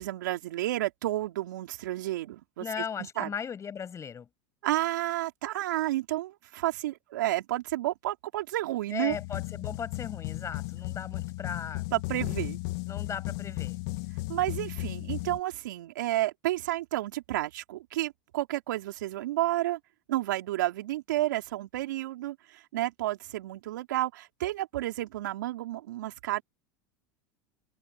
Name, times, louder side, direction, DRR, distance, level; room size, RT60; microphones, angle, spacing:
voice 1, 0.0-3.3 4.6-9.2 11.9-12.6 14.3-19.8 20.1-26.4, right 15 dB, 75° right, 3.8 m, -31 dB
voice 2, 2.6-4.3 8.9-11.8 12.9-13.8, left 7 dB, 30° left, 7.7 m, -37 dB
sound 1, 9.1-15.4, left 22 dB, 65° left, 2.5 m, -35 dB
hypercardioid pair, 90°, 10 cm